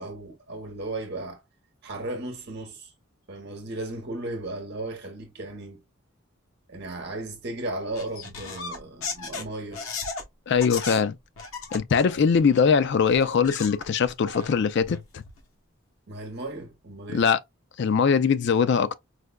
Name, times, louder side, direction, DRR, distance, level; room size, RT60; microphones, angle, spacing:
voice 1, 0.0-1.4 1.8-2.9 3.3-5.8 6.7-9.8 16.1-17.2, right 2 dB, 55° right, 1.0 m, -35 dB
sound 1, 7.9-10.2 10.5-11.0 11.4-12.7 13.1-15.4, left 4 dB, 85° left, 0.9 m, -36 dB
voice 2, 10.5-11.1 11.7-15.2 17.1-17.4 17.8-18.9, left 6 dB, 55° left, 0.3 m, -21 dB
4.8 x 2.2 x 2.2 m
head